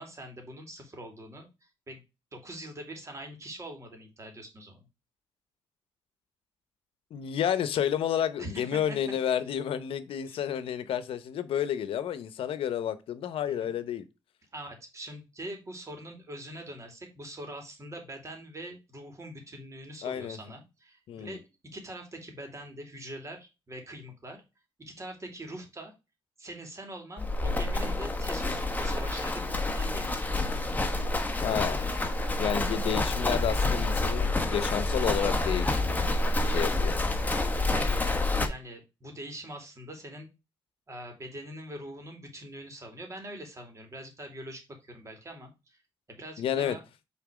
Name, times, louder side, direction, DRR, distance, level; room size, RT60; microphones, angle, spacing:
voice 1, 0.0-2.0 2.3-4.9 8.4-8.8 10.3-10.4 13.5-13.7 14.5-21.4 21.7-24.4 24.8-25.9 26.4-30.5 37.6-38.2 38.5-40.3 40.9-45.8 46.1-46.8, right 1 dB, 35° right, 2.8 m, -43 dB
voice 2, 7.1-14.1 20.0-20.4 21.1-21.4 31.4-31.8 32.4-36.1 36.4-37.0 46.4-46.8, left 9 dB, 80° left, 0.8 m, -30 dB
Livestock farm animals working animals, 27.2-38.5, left 2 dB, 20° left, 1.1 m, -28 dB
5.9 x 3.9 x 4.9 m
cardioid pair, 85°, 9 cm